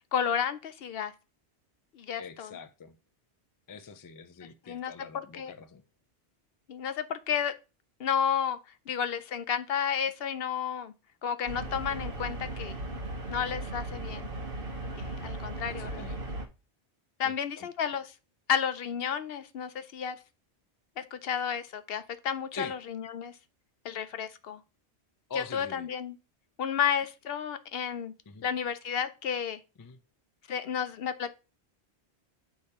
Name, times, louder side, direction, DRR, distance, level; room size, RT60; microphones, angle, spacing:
voice 1, 0.1-1.1 1.9-2.6 4.7-4.9 5.4-5.5 6.7-7.5 8.0-8.6 8.9-10.9 11.2-12.8 13.3-14.3 15.0-16.1 17.2-18.1 18.5-20.2 21.0-23.3 23.8-24.6 25.4-26.2 26.6-28.1 28.4-29.6 30.5-31.3, left 8 dB, 65° left, 0.8 m, -32 dB
voice 2, 2.2-3.0 3.7-5.8 15.8-16.2 17.2-17.7 22.5-22.8 25.3-25.9 28.3-28.4 29.8-30.0, left 5 dB, 35° left, 0.3 m, -43 dB
sound 1, 11.5-16.4, right 1 dB, 55° right, 1.2 m, -37 dB
8.2 x 3.5 x 4.2 m
omnidirectional pair, 1.1 m